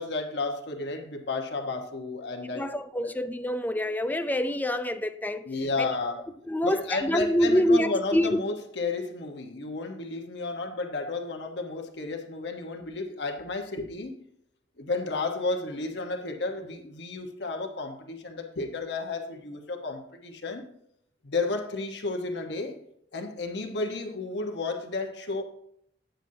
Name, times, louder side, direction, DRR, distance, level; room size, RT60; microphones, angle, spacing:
voice 1, 0.0-3.1 5.4-6.2 6.6-14.3 14.8-20.7 21.2-22.8 23.1-25.4, left 3 dB, 70° left, 1.2 m, -32 dB
voice 2, 2.5-5.5 5.8-6.0 6.5-8.4, left 1 dB, 10° left, 0.4 m, -26 dB
9.1 x 9.0 x 2.8 m
head